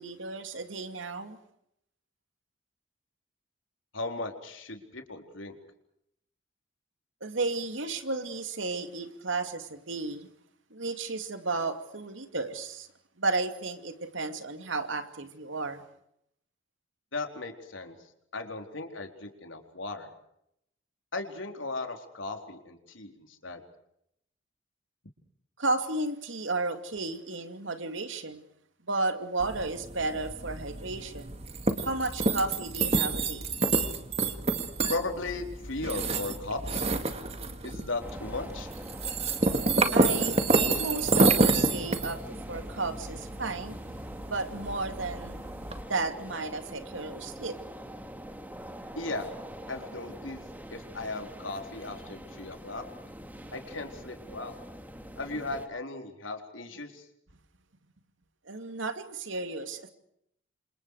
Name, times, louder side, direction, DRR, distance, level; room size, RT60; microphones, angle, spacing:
voice 1, 0.0-1.4 7.2-10.3 10.7-12.9 13.2-15.8 25.6-28.4 28.8-31.4 31.8-33.5 39.9-43.8 44.3-45.4 45.9-47.6 58.5-59.9, right 3 dB, 80° right, 2.6 m, -33 dB
voice 2, 3.9-5.6 17.1-17.9 18.3-20.1 21.1-23.6 34.9-36.9 37.6-38.7 48.9-49.3 49.7-50.4 50.7-52.8 53.5-54.6 55.2-57.0, left 2 dB, 80° left, 4.2 m, -36 dB
sound 1, 29.4-45.8, right 3 dB, 30° right, 2.1 m, -29 dB
sound 2, 38.0-55.7, equal, 10° right, 2.3 m, -44 dB
29.0 x 27.0 x 4.9 m
head